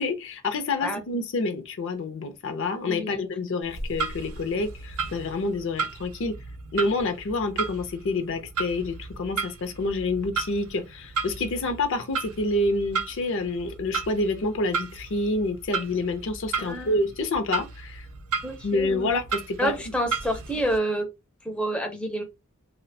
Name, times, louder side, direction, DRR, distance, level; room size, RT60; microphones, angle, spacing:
voice 1, 0.0-6.4 6.7-18.1 18.6-19.7, left 2 dB, 65° left, 0.5 m, -28 dB
voice 2, 2.9-3.2 16.6-17.0 18.4-19.2 19.6-21.1 21.4-22.2, right 1 dB, 5° left, 0.4 m, -29 dB
Clock, 3.6-20.8, right 5 dB, 90° right, 0.5 m, -34 dB
2.3 x 2.1 x 2.6 m
head